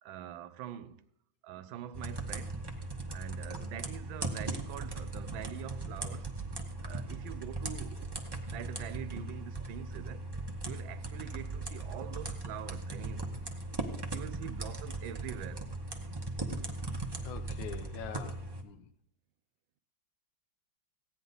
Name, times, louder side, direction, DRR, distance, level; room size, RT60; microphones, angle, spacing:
voice 1, 0.0-1.0 1.4-2.6 3.1-6.4 6.8-10.2 10.6-13.3 14.1-15.7, right 11 dB, 90° right, 1.4 m, -44 dB
sound 1, 1.9-18.6, right 2 dB, 30° right, 0.5 m, -38 dB
voice 2, 17.2-18.8, left 8 dB, 80° left, 1.5 m, -44 dB
15.5 x 9.4 x 3.9 m
omnidirectional pair, 2.1 m